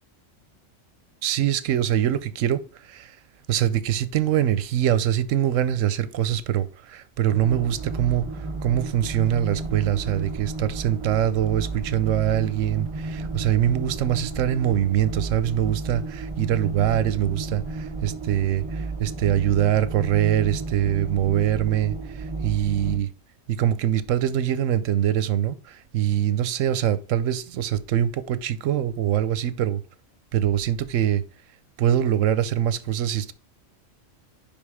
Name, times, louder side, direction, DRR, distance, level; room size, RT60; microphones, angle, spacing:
voice 1, 1.2-3.2 3.5-8.3 8.6-23.1 23.5-29.8 30.3-31.2 31.8-33.3, right 11 dB, 85° right, 1.0 m, -23 dB
sound 1, 7.3-23.0, right 3 dB, 30° right, 0.7 m, -33 dB
5.3 x 5.2 x 4.8 m
omnidirectional pair, 1.3 m